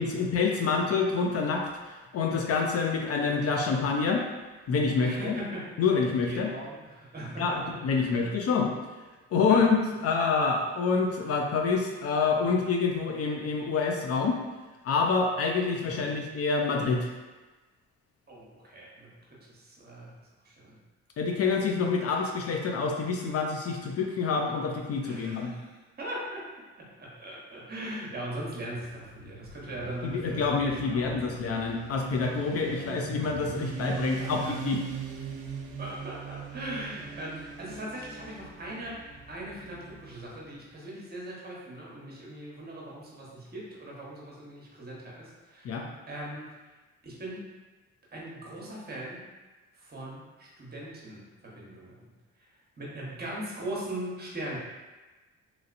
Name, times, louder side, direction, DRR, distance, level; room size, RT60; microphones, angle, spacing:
voice 1, 0.0-4.2 4.7-5.4 5.8-6.5 7.4-8.7 9.3-14.4 14.8-17.1 21.2-25.5 30.0-34.8 45.6-45.8, left 4 dB, 55° left, 1 dB, 0.4 m, -27 dB
voice 2, 5.0-5.7 6.2-7.6 8.0-8.3 9.5-9.6 16.0-16.2 18.3-19.1 19.4-20.1 20.4-20.8 25.0-25.6 26.0-26.5 26.8-31.4 32.5-33.0 34.2-34.3 35.8-45.7 46.1-46.4 47.0-47.5 48.1-49.2 49.8-52.1 52.8-54.6, right 1 dB, 30° right, -5 dB, 1.0 m, -40 dB
Motorcycle, 28.9-40.5, right 6 dB, 85° right, 0.5 m, -41 dB
3.0 x 2.7 x 2.5 m, 1.2 s
cardioid pair, 90°, 30 cm